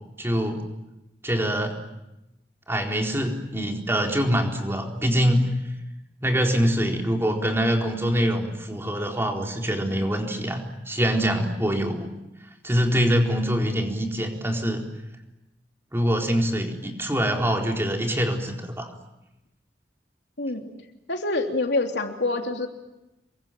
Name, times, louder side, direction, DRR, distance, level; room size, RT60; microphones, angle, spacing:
voice 1, 0.2-0.6 1.2-1.7 2.7-5.5 6.2-12.1 12.6-14.8 15.9-18.9, equal, 15° right, 1 dB, 4.2 m, -24 dB
voice 2, 20.4-20.7 21.1-22.7, left 2 dB, 70° left, 3 dB, 3.2 m, -26 dB
28.0 x 23.5 x 9.1 m, 0.95 s
head